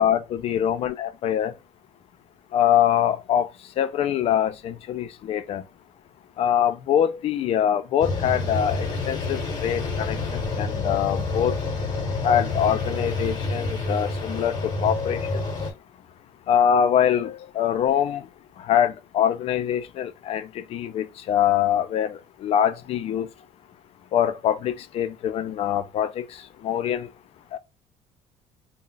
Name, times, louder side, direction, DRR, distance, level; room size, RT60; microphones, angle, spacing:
voice 1, 0.0-1.5 2.5-3.5 3.8-5.6 6.4-11.6 12.2-15.5 16.5-18.3 18.7-23.3 24.1-26.2 26.6-27.1 27.5-27.6, left 9 dB, 50° left, 0.4 m, -24 dB
sound 1, 8.0-15.7, left 3 dB, 30° left, 0.8 m, -28 dB
2.3 x 2.0 x 3.7 m
cardioid pair, 130°, 13 cm